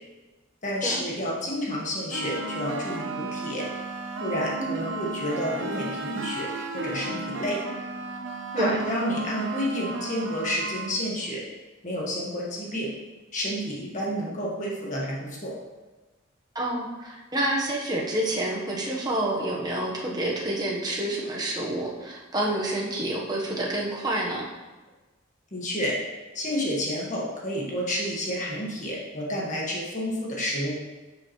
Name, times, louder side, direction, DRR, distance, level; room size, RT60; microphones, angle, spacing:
voice 1, 0.6-3.7 4.2-6.5 6.7-7.6 8.5-11.4 11.8-12.9 13.3-15.5 25.5-25.9 26.3-30.7, equal, 35° left, -4 dB, 1.6 m, -30 dB
sound 1, 2.1-10.9, right 2 dB, 65° right, 0.8 m, -34 dB
voice 2, 4.6-5.0 8.6-8.8 16.5-24.5, right 1 dB, 20° right, -2 dB, 1.1 m, -28 dB
10.5 x 5.6 x 3.2 m, 1.2 s
head